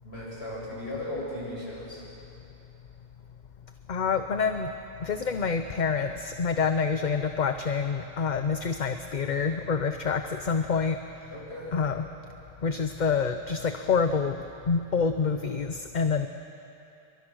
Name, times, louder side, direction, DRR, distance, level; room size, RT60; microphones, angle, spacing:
voice 1, 0.0-2.0 11.3-11.8, left 1 dB, 60° left, -5 dB, 7.9 m, -36 dB
voice 2, 3.9-4.7 5.0-11.0 11.7-12.1 12.6-14.4 14.7-16.3, left 5 dB, 45° left, 8 dB, 0.8 m, -27 dB
29.5 x 24.0 x 6.4 m, 2.8 s
omnidirectional pair, 1.2 m